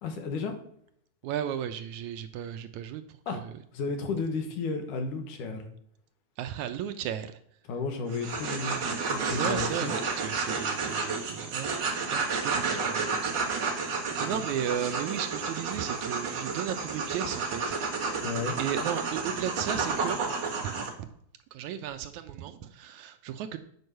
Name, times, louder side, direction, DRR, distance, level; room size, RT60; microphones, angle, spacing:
voice 1, 0.0-0.5 3.3-3.4 3.7-5.7 7.7-9.9 14.2-14.3 18.2-18.6, left 4 dB, 80° left, 5 dB, 2.9 m, -33 dB
voice 2, 1.2-3.0 3.3-3.5 6.4-7.4 9.3-17.8 18.6-20.2 21.0-21.1 21.5-23.6, right 9 dB, 75° right, 9 dB, 1.9 m, -35 dB
sound 1, 8.1-20.9, right 4 dB, 40° right, 2.4 m, -31 dB
9.5 x 5.3 x 6.7 m, 0.67 s
omnidirectional pair, 3.6 m